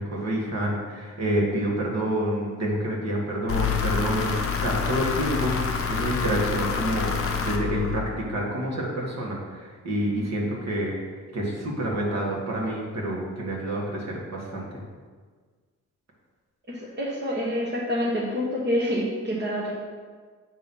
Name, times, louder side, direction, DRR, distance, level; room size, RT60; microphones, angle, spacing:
voice 1, 0.0-5.6 5.9-11.0 11.3-14.7, right 1 dB, 55° right, -3 dB, 1.8 m, -28 dB
sound 1, 3.5-8.4, left 6 dB, 45° left, 0.8 m, -27 dB
voice 2, 16.7-19.7, equal, 35° right, -5 dB, 1.2 m, -27 dB
8.7 x 3.0 x 5.4 m, 1.5 s
cardioid pair, 100°, 31 cm